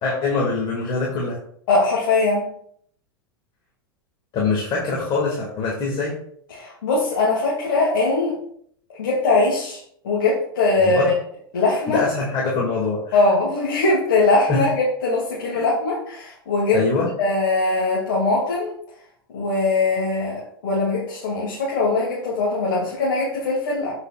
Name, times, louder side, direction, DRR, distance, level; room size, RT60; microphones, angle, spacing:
voice 1, 0.0-1.4 4.3-6.2 10.8-11.1 11.9-13.2 14.5-14.6 15.5-15.6 16.7-17.1, left 3 dB, 40° left, -3 dB, 2.4 m, -23 dB
voice 2, 1.7-2.5 6.5-8.4 9.0-11.1 11.5-12.0 13.1-16.8 17.2-18.7 19.3-23.9, left 3 dB, 60° left, -5 dB, 2.7 m, -21 dB
14.5 x 5.7 x 2.5 m, 0.65 s
figure-of-eight pair, 90°, 12 cm